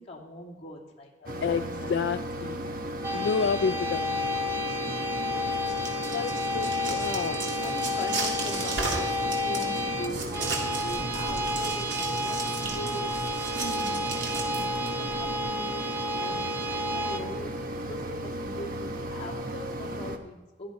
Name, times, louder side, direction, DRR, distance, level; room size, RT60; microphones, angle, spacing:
voice 1, 0.0-1.4 3.1-3.2 5.3-6.2 7.6-13.1 13.6-14.1 14.5-15.9 16.2-17.5 17.9-20.7, left 1 dB, 35° left, -2 dB, 2.8 m, -41 dB
Mechanisms, 1.3-20.2, equal, 55° right, 1.2 m, -35 dB
voice 2, 1.4-2.8 3.1-4.3 5.2-5.5 6.1-7.4, left 5 dB, 75° left, 12 dB, 0.3 m, -30 dB
sound 1, 3.0-17.2, left 1 dB, 15° right, 1.3 m, -31 dB
sound 2, 5.5-14.9, right 3 dB, 85° right, 3.1 m, -35 dB
16.5 x 12.0 x 4.2 m, 1.2 s
head